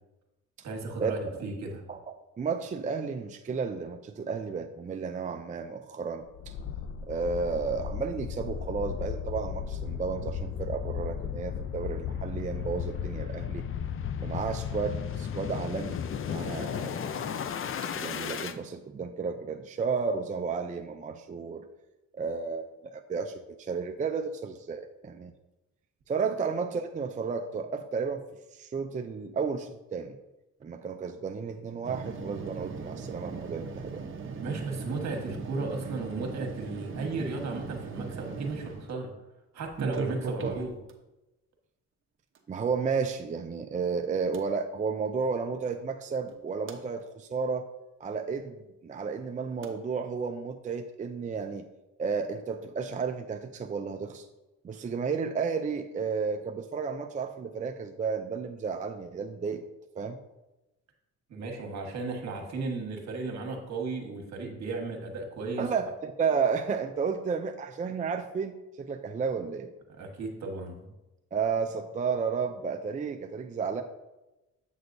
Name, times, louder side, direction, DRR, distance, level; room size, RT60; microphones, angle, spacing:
voice 1, 0.6-1.8 34.4-39.1 39.5-40.8 61.3-65.6 70.0-70.9, right 3 dB, 60° right, 2 dB, 1.6 m, -35 dB
voice 2, 2.4-6.5 7.1-13.6 14.2-16.0 16.3-17.0 17.8-21.7 22.2-25.3 26.1-28.2 28.5-30.2 30.6-34.1 42.5-47.7 48.0-51.7 52.0-54.3 54.6-59.7 59.9-60.2 65.6-69.7 71.3-73.8, right 5 dB, 25° right, 6 dB, 0.4 m, -32 dB
sound 1, 6.3-18.5, left 8 dB, 45° left, 0.5 m, -35 dB
sound 2, 31.8-38.9 39.7-40.9 42.3-42.4 44.3-44.4 46.3-46.8 49.6-49.7, right 4 dB, 40° right, 0.9 m, -37 dB
7.8 x 6.3 x 2.7 m, 1.0 s
cardioid pair, 90°, 30 cm